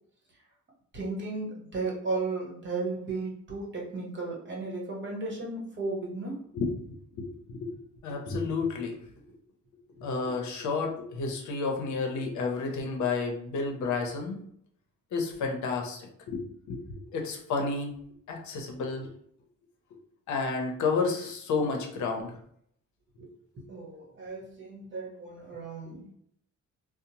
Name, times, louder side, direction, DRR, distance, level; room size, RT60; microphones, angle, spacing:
voice 1, 0.9-6.4 23.2-26.1, right 3 dB, 40° right, -3 dB, 1.0 m, -35 dB
voice 2, 6.5-9.0 10.0-14.4 15.1-16.8 17.1-17.9 18.3-19.1 20.3-22.4, left 4 dB, 75° left, 3 dB, 0.7 m, -31 dB
2.8 x 2.1 x 2.8 m, 0.67 s
cardioid pair, 90°, 30 cm